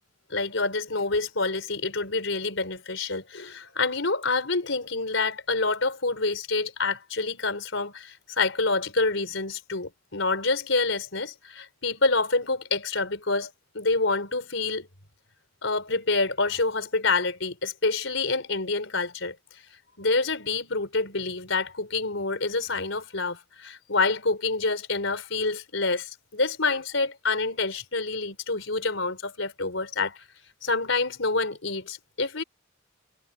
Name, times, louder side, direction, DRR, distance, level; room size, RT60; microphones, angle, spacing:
voice 1, 0.3-14.9 15.6-19.3 20.0-30.2 30.6-32.4, left 3 dB, 70° left, 5.1 m, -27 dB
head